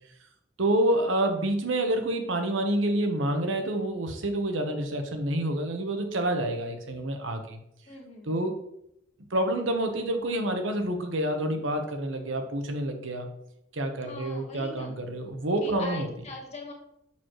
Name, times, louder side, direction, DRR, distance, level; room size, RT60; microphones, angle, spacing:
voice 1, 0.6-7.6 8.3-8.6 9.3-13.3 13.7-16.1, right 1 dB, 80° right, 5 dB, 1.0 m, -28 dB
voice 2, 7.9-8.5 14.0-14.9 15.6-16.7, left 2 dB, 35° left, -1 dB, 1.5 m, -41 dB
6.9 x 6.4 x 3.1 m, 0.78 s
head